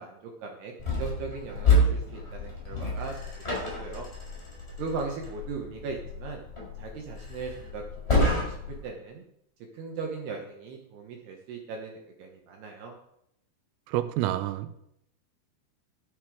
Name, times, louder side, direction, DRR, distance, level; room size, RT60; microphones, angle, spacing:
voice 1, 0.0-4.1 4.8-6.4 6.8-7.8 8.1-9.2 9.7-12.9, right 4 dB, 65° right, 1 dB, 2.8 m, -38 dB
sound 1, 0.8-8.9, left 2 dB, 15° left, 4.5 m, -29 dB
voice 2, 13.9-14.7, right 14 dB, 90° right, 11 dB, 3.4 m, -28 dB
13.0 x 8.1 x 4.9 m, 0.76 s
omnidirectional pair, 5.9 m